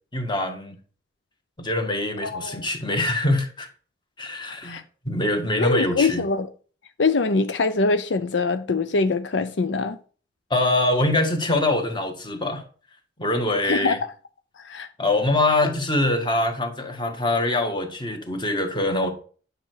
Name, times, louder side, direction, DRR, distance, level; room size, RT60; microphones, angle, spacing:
voice 1, 0.1-0.8 1.6-3.7 4.2-4.8 5.0-6.2 10.5-12.6 13.2-14.0 15.0-19.1, left 2 dB, 25° left, 1.8 m, -24 dB
voice 2, 2.2-2.6 4.6-4.8 5.6-6.5 7.0-10.0 13.6-14.0 14.6-14.9, left 3 dB, 75° left, 0.6 m, -23 dB
10.0 x 6.8 x 4.7 m
head